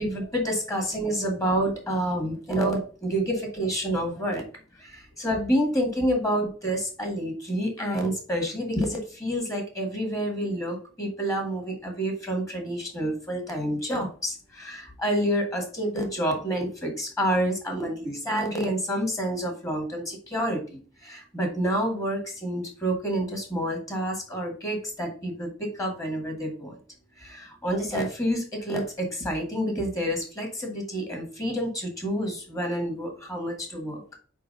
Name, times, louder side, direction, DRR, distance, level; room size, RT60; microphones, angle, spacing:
voice 1, 0.0-4.4 4.7-26.8 27.2-34.0, equal, 15° left, 2 dB, 1.9 m, -28 dB
4.9 x 4.6 x 5.3 m, 0.39 s
head